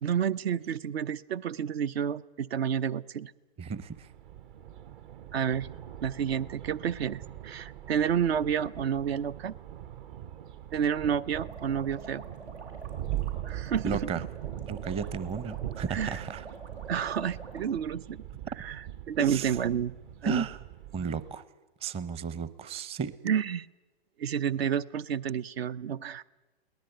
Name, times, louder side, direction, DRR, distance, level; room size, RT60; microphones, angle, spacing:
voice 1, 0.0-3.3 5.3-5.7 6.0-9.5 10.7-12.2 13.4-14.0 15.9-16.2 16.9-18.2 18.6-19.9 20.2-20.4 23.2-23.7 24.2-26.2, right 8 dB, 70° right, 17 dB, 0.8 m, -30 dB
voice 2, 3.6-4.1 13.8-14.2 14.6-16.5 19.2-19.5 20.2-20.6 20.9-21.4 21.8-23.1, right 6 dB, 20° right, 16 dB, 0.8 m, -33 dB
sound 1, 3.7-21.4, right 12 dB, 50° right, 1.3 m, -41 dB
sound 2, 11.4-17.7, right 3 dB, 90° right, 5.2 m, -48 dB
22.5 x 18.5 x 9.1 m, 1.1 s
hypercardioid pair, 130°, 32 cm